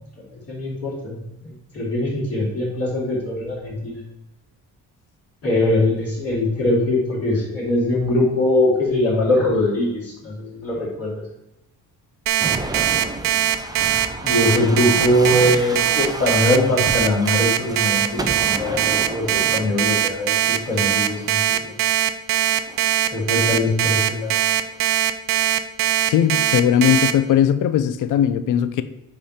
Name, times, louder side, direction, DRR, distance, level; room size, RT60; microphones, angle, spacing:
voice 1, 0.5-1.2 1.7-4.0 5.4-11.2 14.2-21.7 23.1-24.4, left 1 dB, 45° left, -9 dB, 2.9 m, -21 dB
Alarm, 12.3-27.1, right 11 dB, 75° right, 0.7 m, -20 dB
sound 1, 12.4-21.8 22.5-23.0 24.1-24.8, right 2 dB, 10° right, 0.5 m, -33 dB
voice 2, 26.1-28.8, left 9 dB, 65° left, 13 dB, 0.7 m, -18 dB
8.8 x 5.1 x 4.3 m, 0.90 s
cardioid pair, 165°, 33 cm